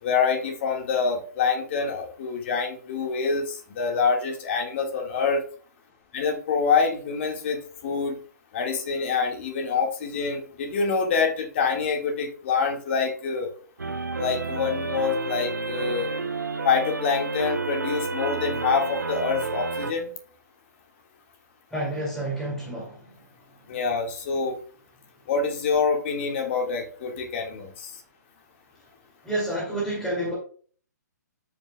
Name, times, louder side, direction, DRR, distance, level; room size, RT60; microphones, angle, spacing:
voice 1, 0.0-5.4 6.1-8.2 8.5-13.5 14.2-16.1 16.6-20.1 23.7-24.6 25.3-27.9, left 5 dB, 40° left, 3 dB, 1.8 m, -26 dB
sound 1, 13.8-19.9, right 3 dB, 80° right, 0.9 m, -30 dB
voice 2, 21.7-23.1 29.2-30.3, right 1 dB, 5° left, -5 dB, 2.3 m, -29 dB
13.5 x 5.4 x 2.3 m, 0.43 s
figure-of-eight pair, 130°, 10 cm